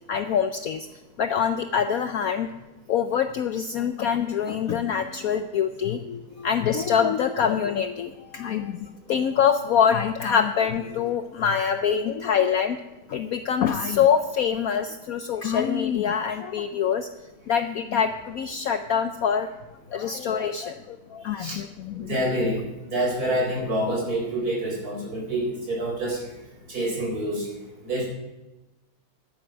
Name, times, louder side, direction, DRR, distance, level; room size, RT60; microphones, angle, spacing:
voice 1, 0.1-0.9 1.2-2.5 2.9-12.8 13.1-17.1 17.5-19.5 19.9-22.2, left 7 dB, 80° left, 8 dB, 0.7 m, -25 dB
voice 2, 22.0-22.6 22.8-26.2 26.7-27.5 27.8-28.1, right 1 dB, 45° right, -2 dB, 4.8 m, -27 dB
11.5 x 9.3 x 6.2 m, 1.1 s
omnidirectional pair, 2.2 m